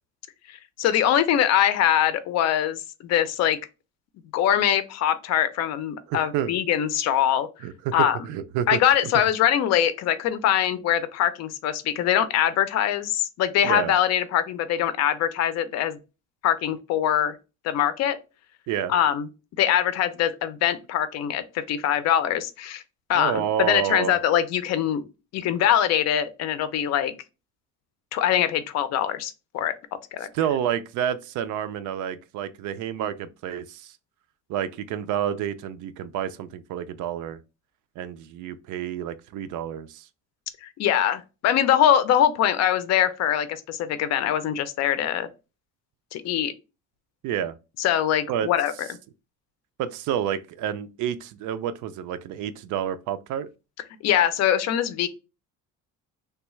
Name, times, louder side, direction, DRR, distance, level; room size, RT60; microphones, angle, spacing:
voice 1, 0.8-3.6 4.3-7.5 7.9-8.2 8.7-16.0 16.4-17.3 17.6-18.2 18.9-19.3 19.6-22.8 23.1-25.0 25.3-27.1 28.1-29.7 30.1-30.3 40.6-45.3 46.1-46.5 47.8-48.9 54.0-55.1, left 10 dB, 55° left, 0.5 m, -23 dB
voice 2, 6.1-6.5 7.6-8.8 13.6-13.9 18.7-18.9 23.1-24.1 30.3-33.9 34.5-37.4 38.0-40.1 47.2-47.5 48.3-48.5 49.8-53.5, right 9 dB, 70° right, 0.5 m, -29 dB
3.3 x 2.3 x 3.0 m
cardioid pair, 150°, 32 cm